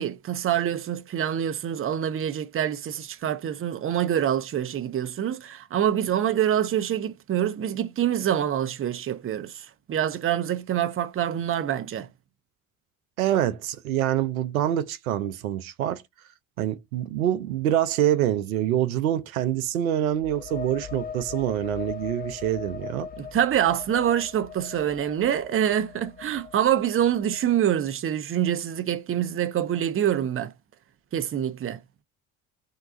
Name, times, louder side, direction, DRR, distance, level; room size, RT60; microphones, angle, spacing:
voice 1, 0.0-12.1 23.2-30.5 31.1-31.8, right 10 dB, 30° right, 0.7 m, -26 dB
voice 2, 13.2-16.0 16.6-23.1, right 11 dB, 85° right, 0.6 m, -26 dB
sound 1, 20.1-27.7, left 6 dB, 20° left, 0.7 m, -40 dB
3.7 x 2.3 x 3.8 m
hypercardioid pair, 60°, 41 cm